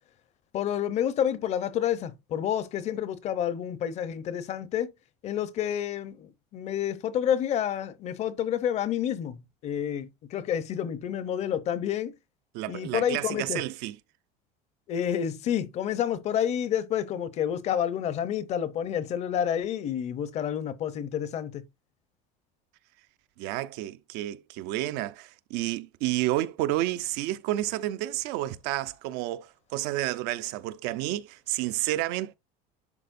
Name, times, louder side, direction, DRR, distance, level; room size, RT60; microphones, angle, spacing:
voice 1, 0.5-4.9 5.2-9.4 9.6-12.1 12.7-13.6 14.9-21.6, left 9 dB, 35° left, 0.8 m, -29 dB
voice 2, 12.5-14.0 23.4-32.3, right 15 dB, 65° right, 0.7 m, -30 dB
11.0 x 4.2 x 2.6 m
cardioid pair, 155°, 18 cm